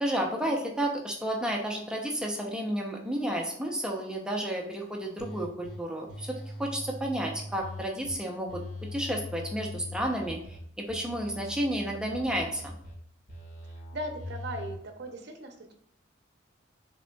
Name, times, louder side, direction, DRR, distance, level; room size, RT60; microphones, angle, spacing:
voice 1, 0.0-8.6 8.9-12.8, right 1 dB, 5° right, 0 dB, 0.6 m, -31 dB
sound 1, 5.2-5.7 6.1-8.1 8.5-10.6 10.9-12.9 13.3-14.8, left 1 dB, 45° left, 1.6 m, -42 dB
voice 2, 13.9-15.7, right 1 dB, 55° right, 4 dB, 0.7 m, -38 dB
6.4 x 3.6 x 2.3 m, 0.65 s
head